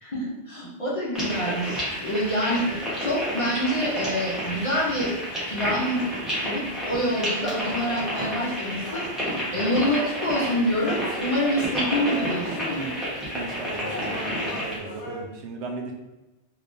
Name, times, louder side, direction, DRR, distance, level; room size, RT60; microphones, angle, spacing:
voice 1, 0.0-5.1 5.5-6.0 6.4-12.9, equal, 35° left, -6 dB, 0.6 m, -27 dB
sound 1, 1.1-14.8, equal, ahead, 1.0 m, -30 dB
sound 2, 7.6-15.2, left 2 dB, 85° left, 1.0 m, -39 dB
voice 2, 13.3-15.9, right 3 dB, 80° right, 2 dB, 0.9 m, -36 dB
3.3 x 2.9 x 2.6 m, 1.0 s
omnidirectional pair, 1.1 m